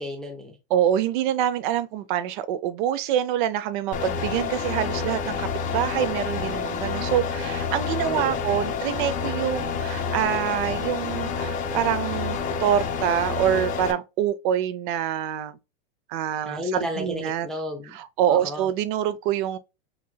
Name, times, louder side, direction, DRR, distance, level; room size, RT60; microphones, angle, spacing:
voice 1, 0.0-0.6 8.1-8.5 16.5-17.9 18.3-18.7, left 1 dB, ahead, 0.3 m, -33 dB
voice 2, 0.7-15.6 16.1-17.5 17.9-19.6, right 10 dB, 50° right, 0.6 m, -26 dB
sound 1, 3.9-13.9, left 5 dB, 25° left, 0.7 m, -28 dB
5.8 x 2.9 x 2.2 m
supercardioid pair, 160°, 32 cm